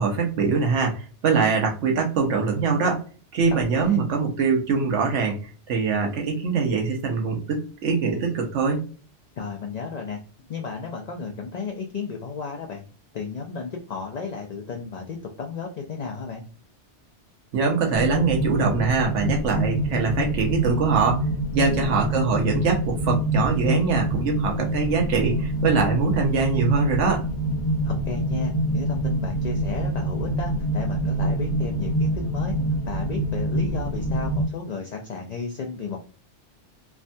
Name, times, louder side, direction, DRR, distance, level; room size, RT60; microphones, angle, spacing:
voice 1, 0.0-3.0 3.3-5.4 5.7-8.8 17.5-21.2 21.5-27.3, right 5 dB, 80° right, 1 dB, 1.1 m, -23 dB
voice 2, 3.5-4.0 9.4-10.2 10.5-12.8 13.1-16.4 21.7-22.0 27.8-32.5 32.9-36.0, left 5 dB, 60° left, 2 dB, 0.4 m, -33 dB
sound 1, 17.9-34.5, right 1 dB, 85° left, 1.1 m, -26 dB
3.3 x 2.2 x 2.6 m, 0.39 s
omnidirectional pair, 1.2 m